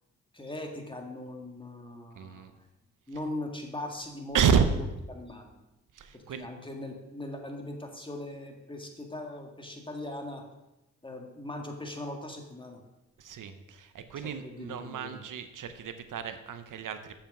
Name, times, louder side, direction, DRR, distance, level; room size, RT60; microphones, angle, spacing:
voice 1, 0.3-2.6 3.1-4.4 5.1-5.6 6.1-10.4 11.0-12.8 14.4-15.2, left 1 dB, 15° left, 2 dB, 1.8 m, -40 dB
voice 2, 2.1-2.5 4.3-4.7 5.9-6.5 13.2-17.2, right 7 dB, 70° right, 10 dB, 0.8 m, -30 dB
6.9 x 5.7 x 6.0 m, 0.98 s
supercardioid pair, 50°, 33 cm